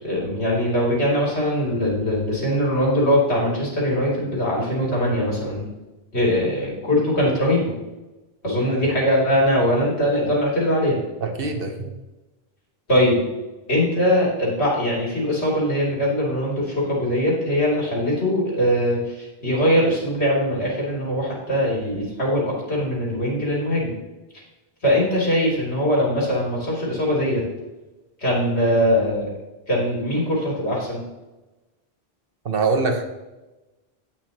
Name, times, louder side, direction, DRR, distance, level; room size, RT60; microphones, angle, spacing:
voice 1, 0.0-5.7 6.1-7.7 8.4-11.0 12.9-13.2 13.7-23.9 24.8-27.4 28.2-29.4 29.7-31.0, equal, 85° left, -4 dB, 3.5 m, -21 dB
voice 2, 11.2-11.9 32.4-33.0, right 4 dB, 60° right, 4 dB, 1.4 m, -23 dB
17.0 x 6.0 x 3.0 m, 1.1 s
omnidirectional pair, 1.1 m